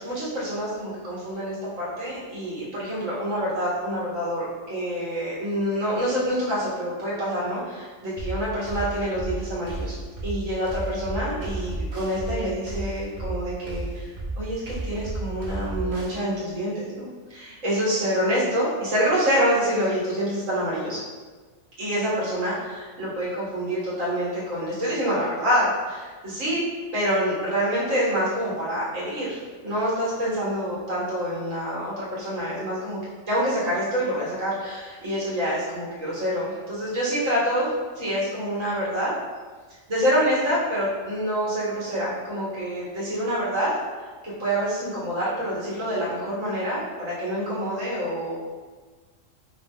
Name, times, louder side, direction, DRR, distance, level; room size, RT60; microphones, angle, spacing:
voice 1, 0.0-9.9 10.2-14.1 14.4-21.0 21.8-26.6 26.9-33.0 33.3-39.1 39.9-43.7 44.2-48.3, equal, 70° right, -8 dB, 2.0 m, -26 dB
sound 1, 8.2-16.2, right 2 dB, 45° right, 1.0 m, -32 dB
5.5 x 2.0 x 3.7 m, 1.4 s
omnidirectional pair, 1.4 m